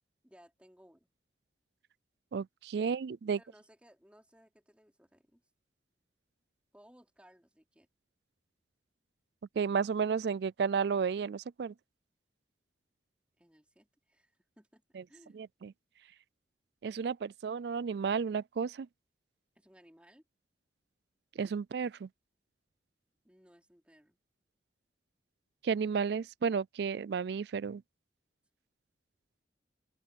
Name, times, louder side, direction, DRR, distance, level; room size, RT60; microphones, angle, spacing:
voice 1, 0.2-1.1 2.8-3.0 3.3-5.4 6.7-7.9 13.4-15.5 19.5-20.2 23.2-24.2, equal, 5° right, 3.3 m, -62 dB
voice 2, 2.3-3.4 9.6-11.7 14.9-15.0 15.3-15.7 16.8-18.9 21.4-22.1 25.6-27.8, right 6 dB, 65° right, 0.3 m, -32 dB
open air
head